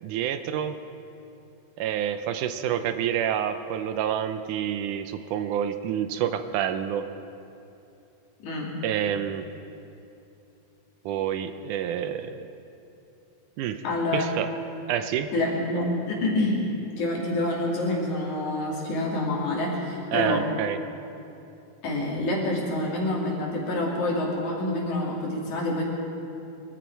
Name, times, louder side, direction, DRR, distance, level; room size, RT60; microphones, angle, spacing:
voice 1, 0.0-0.8 1.8-7.1 8.8-9.5 11.1-12.5 13.6-13.8 14.1-14.5 14.9-15.3 20.1-20.8, right 9 dB, 80° right, 9 dB, 2.1 m, -28 dB
voice 2, 8.4-8.7 13.8-14.3 15.3-16.6 17.0-20.4 21.8-25.8, left 2 dB, 65° left, -3 dB, 3.9 m, -27 dB
23.0 x 13.5 x 4.6 m, 2.8 s
omnidirectional pair, 3.7 m